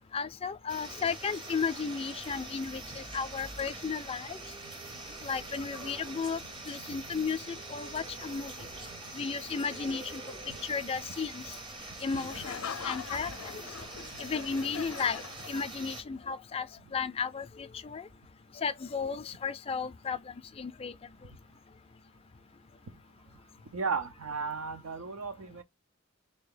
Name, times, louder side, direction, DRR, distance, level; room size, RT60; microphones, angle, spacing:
voice 1, 0.1-4.4 5.2-6.4 6.7-7.4 7.7-8.5 9.1-10.2 10.6-11.4 12.0-12.5 12.8-13.6 14.2-15.2 15.5-16.7 16.9-18.1 18.6-20.2 20.6-20.9, left 5 dB, 25° left, 0.3 m, -34 dB
sound 1, 0.7-16.0, right 2 dB, 20° right, 0.6 m, -44 dB
Singing, 4.4-11.1, right 4 dB, 50° right, 0.8 m, -52 dB
Laughter, 12.1-16.0, left 7 dB, 85° left, 0.5 m, -42 dB
voice 2, 23.7-25.6, right 5 dB, 85° right, 0.6 m, -34 dB
3.4 x 2.7 x 3.7 m
head